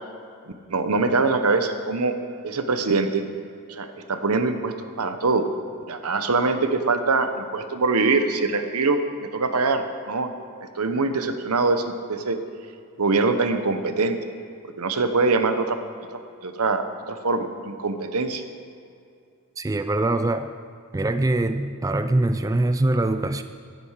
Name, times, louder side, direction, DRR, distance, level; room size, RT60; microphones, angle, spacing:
voice 1, 0.7-2.1 2.4-3.2 3.7-5.5 5.9-9.0 9.3-10.3 10.8-12.4 13.0-14.2 14.8-15.8 16.1-18.4, right 3 dB, 85° right, 8 dB, 1.0 m, -23 dB
voice 2, 19.6-20.5 20.9-23.4, right 2 dB, 15° right, 10 dB, 0.3 m, -23 dB
10.5 x 10.5 x 6.6 m, 2.5 s
head